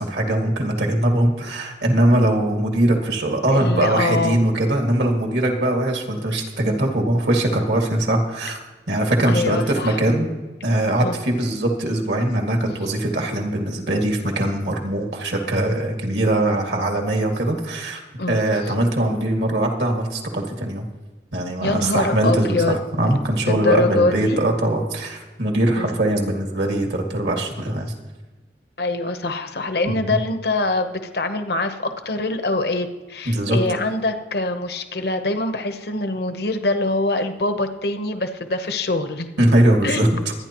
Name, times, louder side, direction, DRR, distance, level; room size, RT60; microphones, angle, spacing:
voice 1, 0.0-8.6 8.9-10.3 10.6-18.0 18.3-20.9 21.3-27.9 29.9-30.0 33.3-33.8 39.4-40.1, right 1 dB, 75° right, 2 dB, 2.1 m, -21 dB
voice 2, 3.5-4.4 9.3-10.0 11.0-11.2 18.2-18.4 18.7-18.8 21.6-22.8 23.4-24.4 25.7-25.9 28.8-39.3 39.8-40.1, left 2 dB, 60° left, 8 dB, 0.9 m, -24 dB
23.5 x 9.8 x 3.0 m, 1.2 s
head